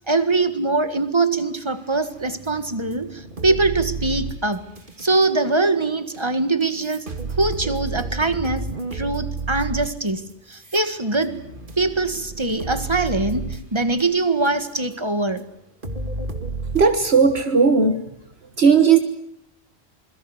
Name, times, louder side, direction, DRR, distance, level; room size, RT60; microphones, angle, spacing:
voice 1, 0.1-4.7 5.0-7.1 7.4-10.2 10.5-11.4 11.8-15.5, right 3 dB, 25° right, 11 dB, 1.8 m, -22 dB
sound 1, 1.9-5.3 6.1-6.2 6.6-14.9 15.4-15.5 15.8-16.8, right 3 dB, 50° right, 2.6 m, -32 dB
voice 2, 16.7-18.0 18.6-19.0, right 5 dB, 65° right, 8 dB, 1.7 m, -15 dB
27.0 x 22.0 x 8.1 m, 0.74 s
omnidirectional pair, 1.1 m